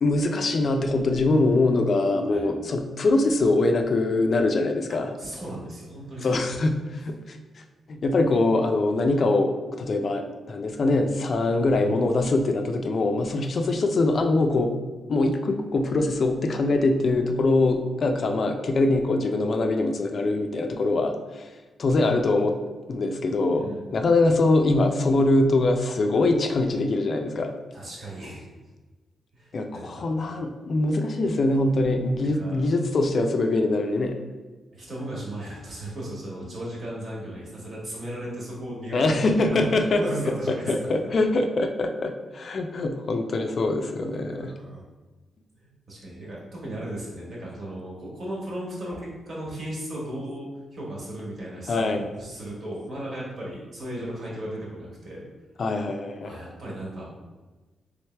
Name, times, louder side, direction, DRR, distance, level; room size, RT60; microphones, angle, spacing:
voice 1, 0.0-5.1 6.2-6.7 7.0-7.4 7.9-9.5 9.8-14.7 15.1-21.5 21.8-22.6 22.9-27.5 29.5-34.2 38.9-40.0 40.5-44.5 51.7-52.1 55.6-56.4, left 2 dB, 50° left, 5 dB, 0.4 m, -23 dB
voice 2, 5.2-6.4 23.5-24.0 27.7-28.4 29.3-30.4 32.4-32.6 34.7-40.7 44.2-44.8 45.6-55.2 56.2-57.0, right 1 dB, 55° right, -4 dB, 1.4 m, -36 dB
3.5 x 3.2 x 3.3 m, 1.2 s
wide cardioid pair, 120°, 0 cm